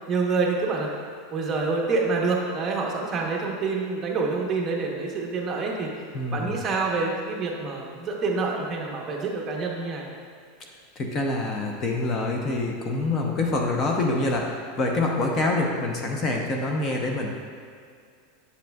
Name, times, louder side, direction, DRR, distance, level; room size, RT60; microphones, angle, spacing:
voice 1, 0.1-0.9 1.3-5.9 6.3-10.1, right 4 dB, 20° right, -1 dB, 0.9 m, -27 dB
voice 2, 6.1-6.6 11.0-17.4, left 2 dB, 30° left, 1 dB, 0.7 m, -26 dB
7.6 x 6.7 x 2.3 m, 2.2 s
supercardioid pair, 150°, 0 cm